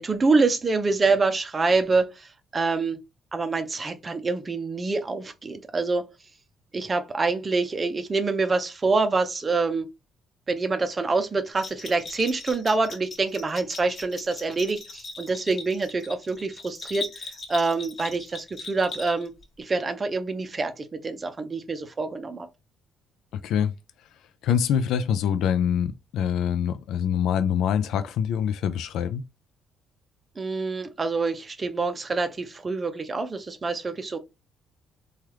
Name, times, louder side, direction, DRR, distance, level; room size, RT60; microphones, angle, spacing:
voice 1, 0.0-3.0 3.3-6.1 6.7-9.9 10.5-19.3 19.6-22.5 30.4-34.2, right 3 dB, 25° right, 0.5 m, -26 dB
Bell, 11.6-19.4, left 3 dB, 40° left, 1.3 m, -39 dB
voice 2, 24.4-29.2, left 8 dB, 75° left, 0.3 m, -25 dB
3.2 x 2.3 x 2.9 m
cardioid pair, 135°, 0 cm